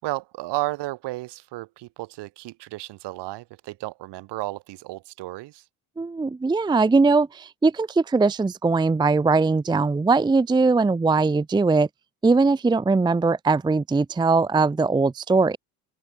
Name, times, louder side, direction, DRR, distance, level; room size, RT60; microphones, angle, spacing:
voice 1, 0.0-5.6, right 18 dB, 65° right, 6.8 m, -33 dB
voice 2, 6.0-11.9 12.2-15.6, right 3 dB, 10° right, 0.6 m, -20 dB
open air
hypercardioid pair, 70°, 44 cm